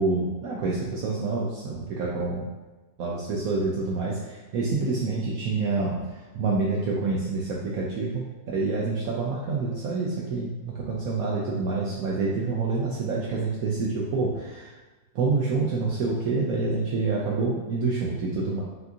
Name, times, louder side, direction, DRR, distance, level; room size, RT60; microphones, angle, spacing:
voice 1, 0.0-2.5 3.0-14.8 15.1-18.6, right 3 dB, 70° right, -4 dB, 1.0 m, -27 dB
5.7 x 2.7 x 2.7 m, 1.2 s
omnidirectional pair, 1.7 m